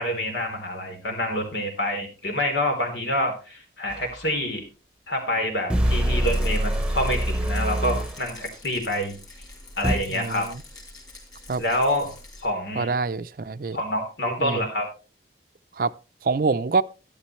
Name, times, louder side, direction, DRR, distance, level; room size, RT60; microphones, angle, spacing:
voice 1, 0.0-4.6 5.1-9.2 9.8-10.5 11.6-12.1 12.4-12.9 13.7-14.9, left 1 dB, 85° left, 3.5 m, -27 dB
sound 1, 3.9-4.0 5.7-8.2 9.8-10.0, right 1 dB, 5° right, 1.0 m, -24 dB
Rattle, 6.2-12.5, left 2 dB, 20° left, 3.6 m, -45 dB
voice 2, 10.1-10.6 11.5-11.6 12.8-13.8 14.4-14.6 15.8-15.9 16.2-16.8, right 4 dB, 50° right, 0.5 m, -25 dB
13.0 x 10.5 x 3.1 m
head